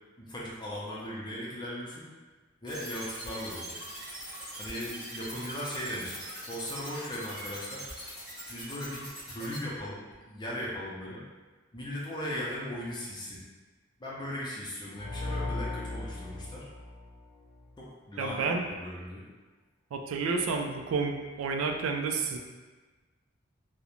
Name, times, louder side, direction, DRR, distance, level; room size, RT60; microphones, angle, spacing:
voice 1, 0.2-2.1 2.6-3.7 4.6-6.2 6.5-7.8 8.5-10.0 10.2-11.2 11.7-13.4 14.0-16.7 17.8-19.2, equal, 20° left, -5 dB, 0.5 m, -38 dB
sound 1, 2.7-9.6, right 1 dB, 5° right, 0.8 m, -42 dB
sound 2, 14.9-17.8, left 2 dB, 80° left, 0.4 m, -37 dB
voice 2, 18.2-18.6 19.9-22.4, right 4 dB, 90° right, 4 dB, 0.3 m, -30 dB
2.4 x 2.0 x 2.9 m, 1.3 s
head